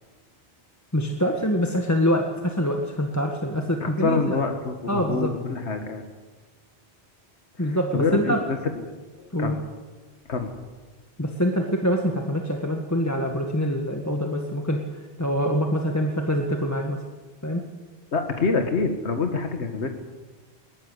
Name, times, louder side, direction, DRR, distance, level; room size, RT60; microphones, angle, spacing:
voice 1, 0.9-4.4 4.9-5.3 7.6-8.4 9.3-9.5 11.2-14.8 15.2-17.0 17.4-17.6, equal, 15° left, 2 dB, 1.7 m, -25 dB
voice 2, 3.8-6.0 7.6-8.8 9.2-9.6 10.3-10.5 18.1-19.9, left 4 dB, 80° left, 5 dB, 1.9 m, -26 dB
20.5 x 20.5 x 8.1 m, 1.3 s
omnidirectional pair, 1.1 m